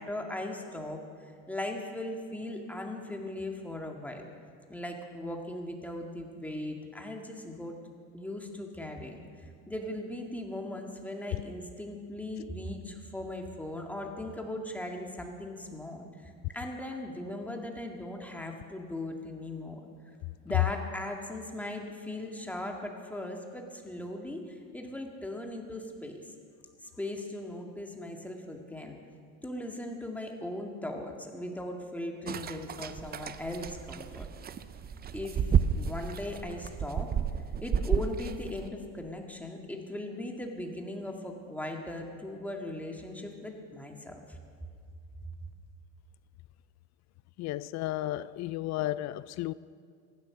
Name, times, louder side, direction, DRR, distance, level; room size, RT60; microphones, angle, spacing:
voice 1, 0.0-4.3 4.7-7.8 8.1-19.9 20.4-26.3 26.8-29.0 29.4-34.3 35.1-35.4 35.7-37.1 37.6-44.4, left 1 dB, 5° left, 2.0 m, -38 dB
sound 1, 32.3-38.7, right 7 dB, 25° right, 0.6 m, -32 dB
voice 2, 47.4-49.5, left 15 dB, 50° left, 0.4 m, -33 dB
15.0 x 11.5 x 6.0 m
supercardioid pair, 95°, 36 cm